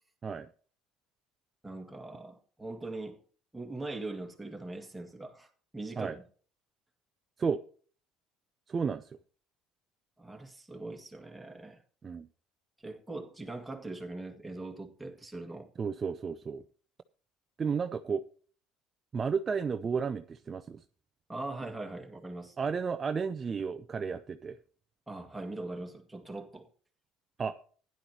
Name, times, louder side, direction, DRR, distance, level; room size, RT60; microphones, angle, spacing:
voice 1, 1.6-3.2 3.5-6.2 10.2-11.8 12.8-15.7 21.3-22.6 25.1-26.7, right 2 dB, 5° right, 1.9 m, -41 dB
voice 2, 8.7-9.2 12.0-12.3 15.8-16.6 17.6-18.2 19.1-20.8 22.6-24.6 27.4-27.6, right 5 dB, 25° right, 0.5 m, -32 dB
15.5 x 10.5 x 2.9 m
cardioid pair, 145°, 0 cm